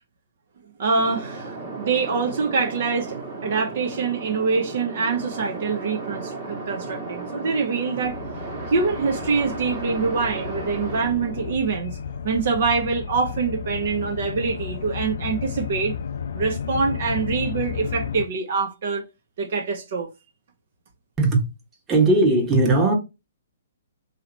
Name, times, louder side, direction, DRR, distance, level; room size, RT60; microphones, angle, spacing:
voice 1, 0.8-8.2 8.7-12.0 12.2-15.9 16.3-19.0 19.4-20.1, right 4 dB, 55° right, 0.7 m, -25 dB
sound 1, 1.0-11.5, right 3 dB, 35° right, 1.4 m, -34 dB
sound 2, 8.1-18.3, left 7 dB, 65° left, 0.4 m, -33 dB
voice 2, 21.9-22.9, right 2 dB, 15° right, 1.1 m, -18 dB
3.1 x 2.8 x 3.8 m
hypercardioid pair, 130°, 0 cm